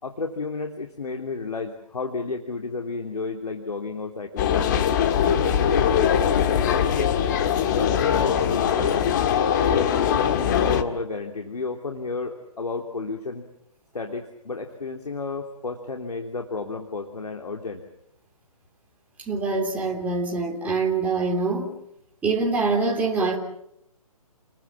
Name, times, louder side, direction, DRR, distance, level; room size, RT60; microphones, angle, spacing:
voice 1, 0.0-4.9 5.3-7.1 7.8-9.0 9.3-10.0 10.2-13.4 13.9-17.8, left 4 dB, 90° left, 3 dB, 3.2 m, -32 dB
sound 1, 4.4-10.8, left 9 dB, 30° left, 1.9 m, -21 dB
voice 2, 19.3-21.7 22.2-23.4, right 3 dB, 5° right, -1 dB, 3.4 m, -24 dB
30.0 x 21.5 x 7.3 m, 0.78 s
hypercardioid pair, 155°, 19 cm